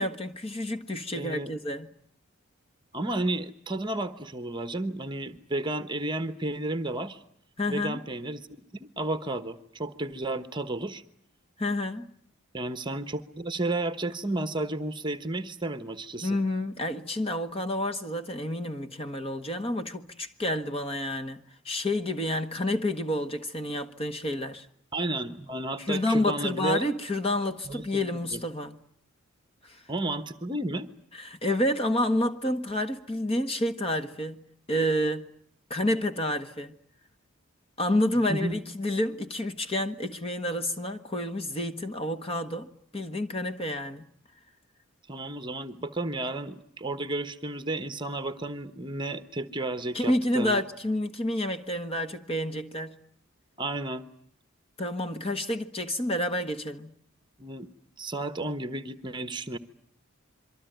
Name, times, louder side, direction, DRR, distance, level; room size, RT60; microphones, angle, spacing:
voice 1, 0.0-1.9 7.6-8.0 11.6-12.1 16.2-24.7 25.8-28.7 29.6-29.8 31.1-34.4 34.7-35.3 35.7-36.7 37.8-44.1 49.9-53.0 54.8-56.9, left 1 dB, 25° left, 1.4 m, -29 dB
voice 2, 1.1-1.5 2.9-7.2 7.7-8.5 8.8-11.0 12.5-16.4 24.9-26.9 27.7-28.4 29.9-30.9 38.3-38.6 45.1-50.6 53.6-54.0 57.4-57.7 58.0-59.6, right 2 dB, 20° right, 1.1 m, -32 dB
26.5 x 23.5 x 9.2 m
head